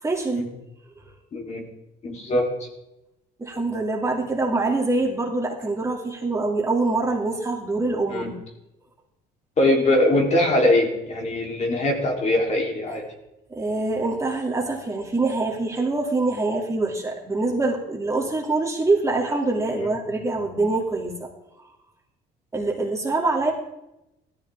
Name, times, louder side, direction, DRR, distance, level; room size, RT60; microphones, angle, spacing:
voice 1, 0.0-0.5 1.0-1.1 3.4-8.3 13.5-21.3 22.5-23.5, right 3 dB, 15° right, -1 dB, 2.6 m, -24 dB
voice 2, 1.3-1.7 2.0-2.5 8.1-8.3 9.6-13.0 19.8-19.9, left 1 dB, 45° left, 0 dB, 3.5 m, -22 dB
17.0 x 14.0 x 3.6 m, 0.89 s
cardioid pair, 110°, 17 cm